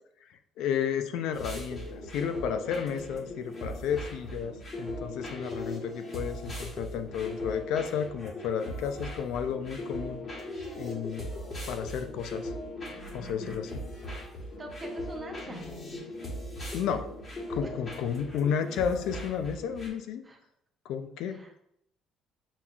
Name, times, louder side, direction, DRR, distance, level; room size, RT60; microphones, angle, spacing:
voice 1, 0.3-10.2 10.8-11.3 11.7-12.5 13.1-13.8 16.7-17.1 17.5-20.2 20.9-21.4, left 8 dB, 75° left, 8 dB, 0.3 m, -32 dB
sound 1, 1.3-19.9, left 1 dB, 35° left, 1.2 m, -39 dB
voice 2, 14.6-15.7 17.6-17.7 20.2-20.4 21.3-21.5, right 2 dB, 20° right, 2 dB, 0.7 m, -44 dB
7.0 x 2.4 x 2.3 m, 0.74 s
cardioid pair, 145°, 0 cm